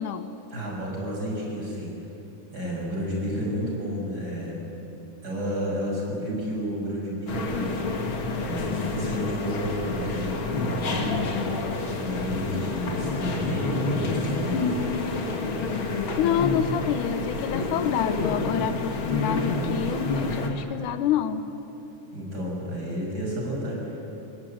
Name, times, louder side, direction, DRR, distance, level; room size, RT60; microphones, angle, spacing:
voice 1, 0.0-0.3 16.2-21.4, left 9 dB, 80° left, 10 dB, 2.3 m, -27 dB
voice 2, 0.5-1.9 2.5-4.6 5.2-7.7 8.4-11.5 12.0-14.8 22.1-24.1, equal, 30° right, -3 dB, 6.9 m, -31 dB
sound 1, 7.3-20.5, left 3 dB, 45° left, 2.5 m, -28 dB
26.0 x 19.5 x 9.1 m, 2.9 s
omnidirectional pair, 3.6 m